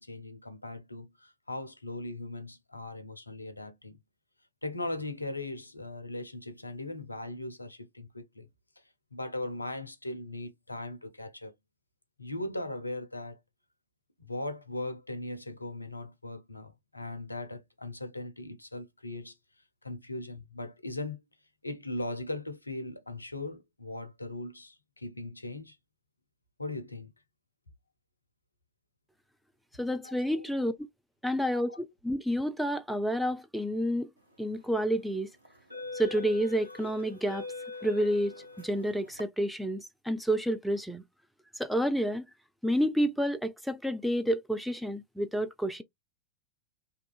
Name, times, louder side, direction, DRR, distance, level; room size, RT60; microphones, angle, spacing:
voice 1, 0.0-4.0 4.6-8.5 9.1-11.5 12.2-13.4 14.3-19.3 19.8-21.2 21.6-25.8 26.6-27.1 30.0-30.5 31.7-31.8, left 2 dB, 85° left, 0.4 m, -39 dB
voice 2, 29.8-30.7 31.2-31.8 32.0-34.1 34.4-35.3 35.9-37.4 37.8-41.0 41.6-42.2 42.6-45.8, equal, ahead, 0.3 m, -29 dB
sound 1, 34.4-34.7 35.4-39.2, left 3 dB, 85° right, 0.7 m, -43 dB
2.7 x 2.4 x 2.2 m
figure-of-eight pair, 90°, 0 cm